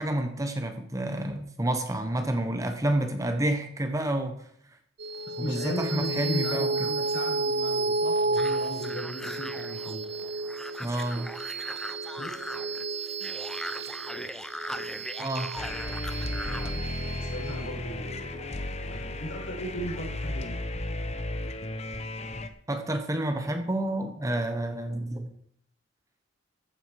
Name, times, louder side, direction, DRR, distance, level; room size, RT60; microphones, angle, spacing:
voice 1, 0.0-4.4 5.4-6.9 10.8-11.3 15.2-15.6 22.7-25.3, right 1 dB, 15° right, 6 dB, 1.2 m, -29 dB
sound 1, 5.0-19.7, right 2 dB, 55° right, 0.8 m, -32 dB
voice 2, 5.2-10.0 12.2-12.3 16.9-18.3 18.8-20.6, equal, 75° left, -1 dB, 5.1 m, -37 dB
sound 2, 8.3-16.7, equal, 5° left, 0.7 m, -39 dB
sound 3, 15.6-22.5, left 1 dB, 30° left, 1.0 m, -34 dB
14.5 x 9.2 x 4.8 m, 0.67 s
head